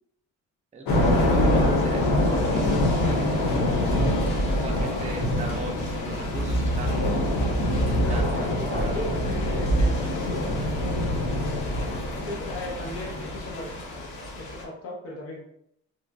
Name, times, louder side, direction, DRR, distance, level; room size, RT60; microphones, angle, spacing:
voice 1, 0.7-4.2 4.6-7.2 7.6-9.4, right 3 dB, 25° right, 1 dB, 0.5 m, -38 dB
Thunder / Rain, 0.9-14.6, left 1 dB, 80° left, 0.8 m, -25 dB
voice 2, 8.0-11.1 12.3-15.4, left 1 dB, 50° left, -2 dB, 0.8 m, -37 dB
3.0 x 2.4 x 2.3 m, 0.75 s
cardioid pair, 105°, 31 cm